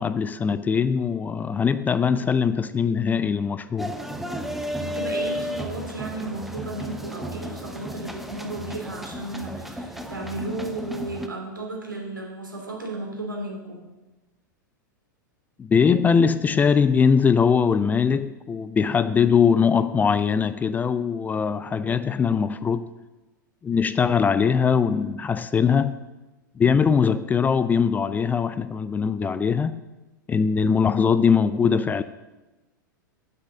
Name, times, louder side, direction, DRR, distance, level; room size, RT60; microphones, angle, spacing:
voice 1, 0.0-4.0 15.6-22.9 23.6-26.0 26.6-29.8 30.3-32.0, left 6 dB, 15° left, 0.4 m, -21 dB
sound 1, 3.8-11.3, equal, ahead, 0.8 m, -33 dB
voice 2, 4.8-13.9, right 2 dB, 85° right, 2.7 m, -34 dB
9.6 x 7.2 x 6.3 m
figure-of-eight pair, 95°, 11 cm